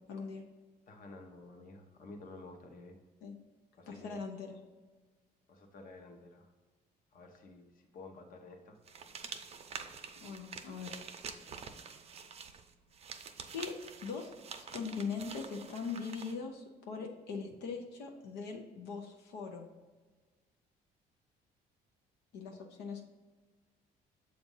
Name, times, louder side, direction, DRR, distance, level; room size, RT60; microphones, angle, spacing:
voice 1, 0.1-0.4 3.2-3.3 3.9-4.6 10.2-11.0 13.5-19.7 22.3-23.0, left 5 dB, 90° left, 2 dB, 0.8 m, -41 dB
voice 2, 0.9-3.0 3.8-4.2 5.5-6.5 7.1-8.8, left 2 dB, 55° left, 4 dB, 0.9 m, -51 dB
sound 1, 8.9-16.4, right 6 dB, 40° right, 0.6 m, -47 dB
7.2 x 2.6 x 5.4 m, 1.3 s
cardioid pair, 110°, 17 cm